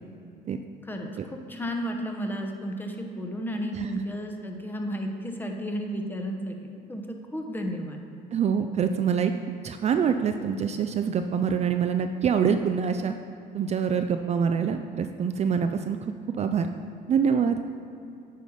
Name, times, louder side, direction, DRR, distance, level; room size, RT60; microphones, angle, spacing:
voice 1, 0.8-8.1, equal, 10° left, 2 dB, 1.0 m, -33 dB
voice 2, 8.3-9.3 9.6-13.1 13.5-16.0 16.4-16.7 17.1-17.6, right 7 dB, 40° right, 7 dB, 0.4 m, -25 dB
9.3 x 5.6 x 4.9 m, 2.6 s
cardioid pair, 110°, 17 cm